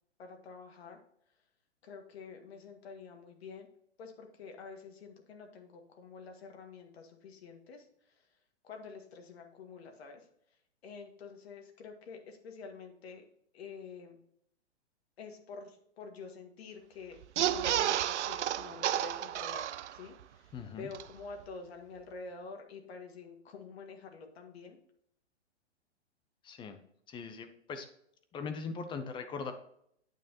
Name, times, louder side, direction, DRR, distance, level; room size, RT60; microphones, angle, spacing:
voice 1, 0.2-1.0 1.8-3.7 4.0-13.2 13.5-14.2 15.2-24.8, left 4 dB, 65° left, 4 dB, 1.8 m, -48 dB
sound 1, 17.2-20.2 20.6-20.7 20.9-21.0, right 11 dB, 85° right, 0.5 m, -31 dB
voice 2, 20.5-20.9 26.4-26.8 27.1-27.9 28.3-29.5, left 5 dB, 15° left, 8 dB, 0.6 m, -40 dB
9.1 x 6.2 x 2.9 m, 0.70 s
hypercardioid pair, 130°, 34 cm